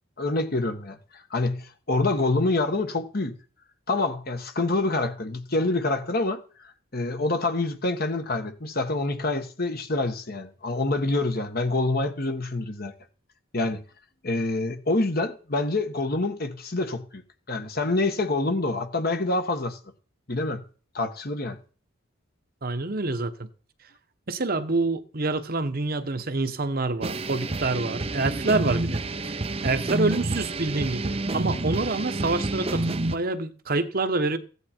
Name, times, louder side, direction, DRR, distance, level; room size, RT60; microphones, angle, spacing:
voice 1, 0.2-3.3 3.9-12.9 13.5-13.8 14.2-17.2 17.5-19.8 20.3-20.6 20.9-21.6, left 2 dB, 45° left, 1.5 m, -26 dB
voice 2, 22.6-23.5 24.3-34.4, right 3 dB, 45° right, 1.0 m, -27 dB
sound 1, 27.0-33.1, right 2 dB, 30° right, 0.7 m, -29 dB
15.5 x 9.9 x 4.5 m
head